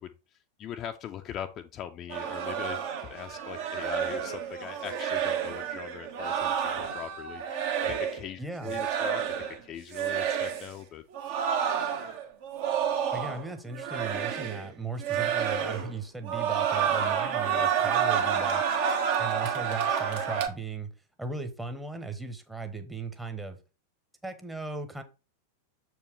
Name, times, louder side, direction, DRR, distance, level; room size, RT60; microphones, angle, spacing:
voice 1, 0.0-9.2 9.6-11.0, left 9 dB, 30° left, 6 dB, 0.5 m, -41 dB
sound 1, 2.1-8.3 8.6-9.6 9.9-10.7 11.1-13.5 13.7-14.7 15.0-16.0 16.2-20.5, right 8 dB, 50° right, 1.2 m, -29 dB
voice 2, 8.4-8.7 13.1-18.6 19.2-20.9 21.2-23.6 24.2-25.0, right 3 dB, 5° right, 7 dB, 1.0 m, -37 dB
7.0 x 4.7 x 3.2 m, 0.31 s
figure-of-eight pair, 90°, 0 cm